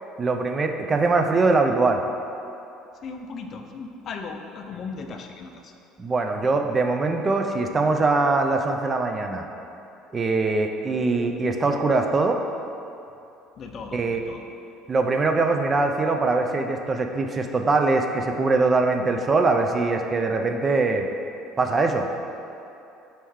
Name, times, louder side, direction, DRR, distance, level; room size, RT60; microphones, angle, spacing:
voice 1, 0.2-2.0 6.0-9.4 10.1-12.4 13.9-14.2 14.9-21.1 21.6-22.1, right 3 dB, 30° right, 4 dB, 0.3 m, -22 dB
voice 2, 2.9-5.7 13.6-14.5, left 4 dB, 50° left, 4 dB, 0.3 m, -37 dB
4.2 x 3.0 x 3.6 m, 2.7 s
supercardioid pair, 95°, 0 cm